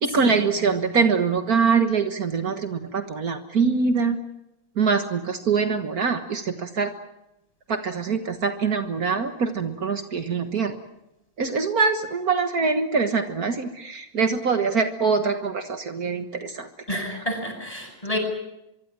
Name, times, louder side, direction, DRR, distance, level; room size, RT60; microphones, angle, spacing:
voice 1, 0.0-4.2 4.8-6.9 7.7-10.8 11.4-17.2, right 5 dB, 85° right, 7 dB, 0.8 m, -24 dB
voice 2, 16.9-18.2, left 1 dB, 10° left, 2 dB, 8.0 m, -29 dB
24.5 x 24.5 x 7.4 m, 0.87 s
omnidirectional pair, 4.0 m